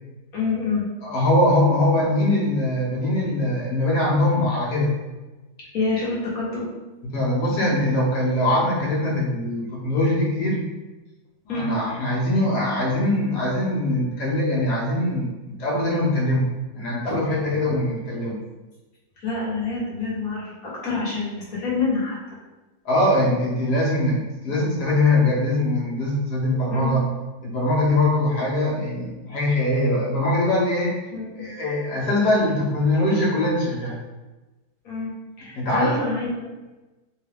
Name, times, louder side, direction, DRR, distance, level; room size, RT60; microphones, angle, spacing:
voice 1, 0.3-0.9 5.7-6.7 11.5-11.8 19.2-22.2 26.7-27.0 31.1-31.5 34.8-36.5, left 3 dB, 65° left, -7 dB, 1.6 m, -27 dB
voice 2, 1.0-4.9 7.0-10.7 11.5-18.4 22.9-27.1 27.4-31.0 31.3-34.0 35.5-36.0, left 1 dB, 85° left, -5 dB, 1.6 m, -22 dB
4.0 x 2.3 x 3.4 m, 1.1 s
omnidirectional pair, 1.7 m